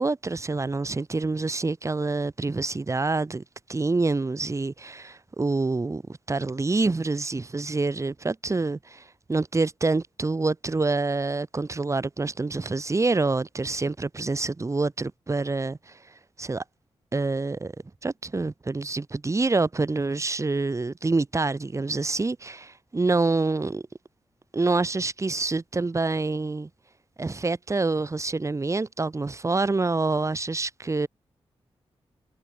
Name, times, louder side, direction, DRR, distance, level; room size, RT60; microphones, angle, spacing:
voice 1, 0.0-3.4 3.7-6.0 6.3-15.9 16.4-16.6 17.1-17.7 18.0-23.8 24.5-26.7 27.2-31.1, right 3 dB, 30° right, 0.9 m, -26 dB
cardioid pair, 50°, 11 cm